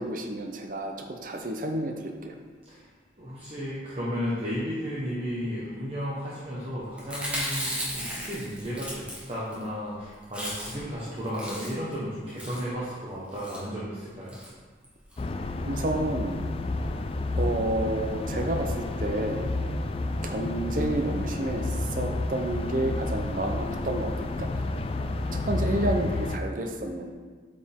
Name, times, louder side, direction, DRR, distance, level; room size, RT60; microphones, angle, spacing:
voice 1, 0.0-2.3 15.7-16.4 17.4-19.5 20.2-24.6 25.5-27.1, right 1 dB, 50° right, 3 dB, 0.7 m, -30 dB
voice 2, 3.2-14.4, equal, 30° right, -9 dB, 1.2 m, -34 dB
Chewing mastication, 7.0-9.6 9.9-10.0 10.2-10.9 11.2-11.9 12.4-12.7 13.3-13.6 14.3-14.5 14.8-14.9 15.1-15.2, equal, 5° right, 1.2 m, -35 dB
sound 1, 15.2-26.4, left 2 dB, 30° left, 0.3 m, -30 dB
8.3 x 5.1 x 3.6 m, 1.5 s
head